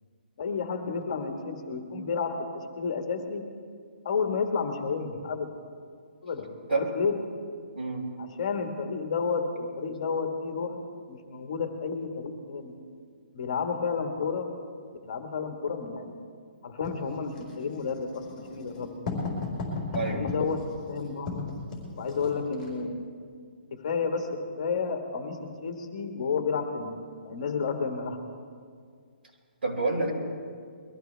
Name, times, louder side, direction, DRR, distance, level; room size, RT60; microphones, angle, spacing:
voice 1, 0.4-3.4 4.0-5.5 6.2-7.1 8.2-10.8 11.1-12.7 13.3-14.5 15.0-16.2 16.6-19.1 20.1-20.6 20.9-21.5 22.0-23.1 23.7-24.3 24.6-27.0 27.2-28.2, left 5 dB, 40° left, 4 dB, 1.5 m, -31 dB
voice 2, 7.8-8.1 19.9-20.2 29.6-30.1, right 3 dB, 70° right, -2 dB, 5.2 m, -28 dB
Writing, 16.8-22.8, left 3 dB, 15° left, 4.2 m, -36 dB
23.0 x 15.0 x 3.4 m, 2.1 s
hypercardioid pair, 175°, 6 cm